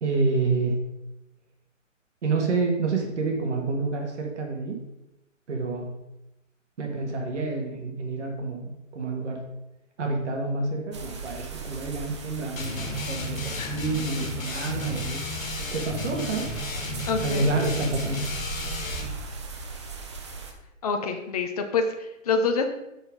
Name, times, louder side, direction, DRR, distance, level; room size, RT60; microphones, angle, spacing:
voice 1, 0.0-0.8 2.2-4.8 5.5-5.9 6.8-9.4 10.0-15.2 15.7-16.5 17.2-18.3, right 3 dB, 60° right, 1 dB, 1.9 m, -28 dB
sound 1, 10.9-20.5, right 4 dB, 20° right, 0.5 m, -38 dB
sound 2, 12.6-19.2, left 1 dB, 85° left, 1.6 m, -33 dB
voice 2, 17.1-17.5 20.8-22.6, left 4 dB, 30° left, 6 dB, 0.5 m, -26 dB
6.2 x 5.5 x 5.1 m, 0.91 s
hypercardioid pair, 155°, 39 cm